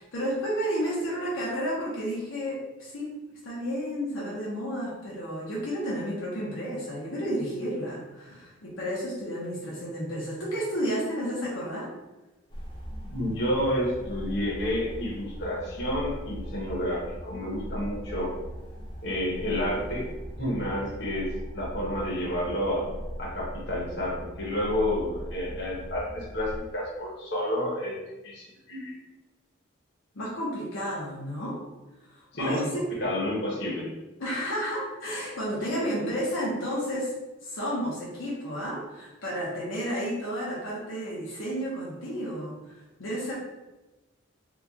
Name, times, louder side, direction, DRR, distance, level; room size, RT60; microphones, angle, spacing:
voice 1, 0.0-3.1 3.4-11.9 30.1-31.6 32.1-32.9 34.2-37.1 37.4-43.3, equal, 80° left, -6 dB, 0.8 m, -31 dB
sound 1, 12.5-26.6, equal, 25° left, 0.5 m, -39 dB
voice 2, 13.0-18.3 19.0-20.1 20.4-22.8 23.2-28.0 28.2-28.9 32.3-32.6 33.0-33.9, left 1 dB, 55° left, -5 dB, 0.9 m, -30 dB
2.9 x 2.4 x 3.5 m, 1.1 s
head